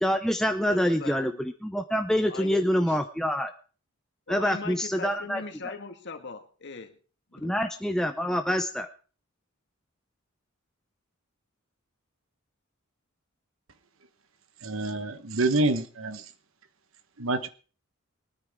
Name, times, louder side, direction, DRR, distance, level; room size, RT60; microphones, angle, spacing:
voice 1, 0.0-3.5 4.3-5.4 7.4-8.9, equal, ahead, 6 dB, 0.6 m, -26 dB
voice 2, 0.7-1.4 2.3-3.0 4.3-7.0 7.3-7.5, left 4 dB, 55° left, 6 dB, 1.8 m, -40 dB
voice 3, 14.6-16.2 17.2-17.5, right 2 dB, 65° right, 11 dB, 1.2 m, -27 dB
23.5 x 9.8 x 3.6 m, 0.38 s
head